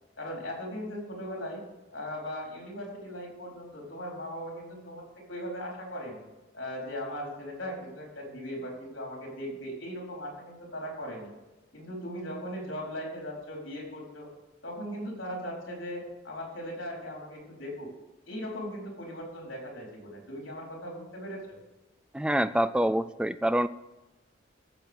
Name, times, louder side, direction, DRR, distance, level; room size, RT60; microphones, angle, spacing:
voice 1, 0.2-1.6 1.9-5.0 5.3-6.2 6.5-11.3 11.7-14.3 14.6-17.9 18.3-21.6, equal, 80° left, -1 dB, 4.3 m, -38 dB
voice 2, 22.1-23.7, right 1 dB, 5° right, 13 dB, 0.3 m, -26 dB
16.5 x 7.7 x 5.3 m, 1.1 s
head